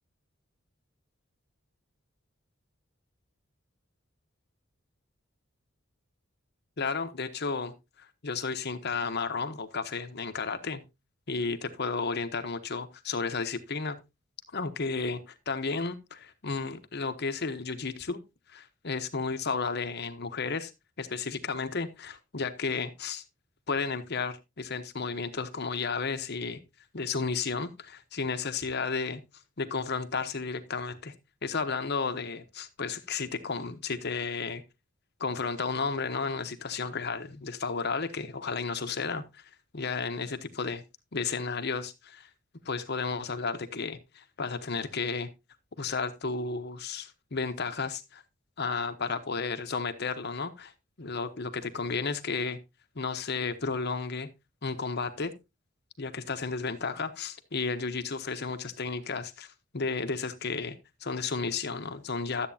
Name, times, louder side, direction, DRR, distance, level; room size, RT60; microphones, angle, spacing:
voice 1, 6.8-10.8 11.3-14.0 14.5-18.2 18.5-20.7 21.0-23.2 23.7-26.6 26.9-29.2 29.6-31.1 31.4-34.6 35.2-40.8 41.1-42.3 42.6-45.3 45.8-48.2 48.6-50.7 51.0-52.6 52.9-54.3 54.6-55.3 56.0-59.5 59.7-62.5, left 4 dB, 55° left, 1.0 m, -33 dB
13.0 x 8.2 x 2.8 m
head